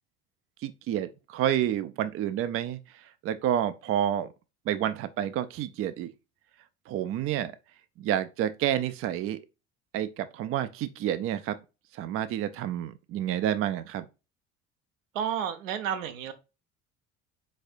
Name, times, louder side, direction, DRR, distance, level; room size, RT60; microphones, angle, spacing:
voice 1, 0.6-4.3 4.7-6.1 6.9-7.5 8.0-9.4 9.9-11.6 11.9-14.1, right 11 dB, 35° right, 0.5 m, -29 dB
voice 2, 15.1-16.3, right 8 dB, 70° right, 0.8 m, -31 dB
4.2 x 4.2 x 2.5 m
figure-of-eight pair, 60°, 41 cm